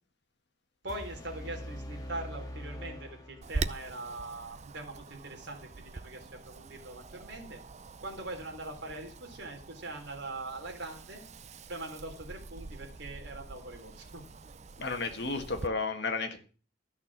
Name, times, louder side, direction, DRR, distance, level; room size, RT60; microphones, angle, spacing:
voice 1, 0.8-7.6 8.0-11.2 11.7-14.3, right 2 dB, 60° right, 2 dB, 3.6 m, -42 dB
sound 1, 0.9-3.9, equal, 20° left, 1.7 m, -43 dB
Wind, 3.4-15.7, right 3 dB, 35° right, 0.5 m, -43 dB
voice 2, 14.8-16.4, left 3 dB, 55° left, 6 dB, 1.7 m, -32 dB
13.5 x 6.4 x 7.5 m, 0.39 s
head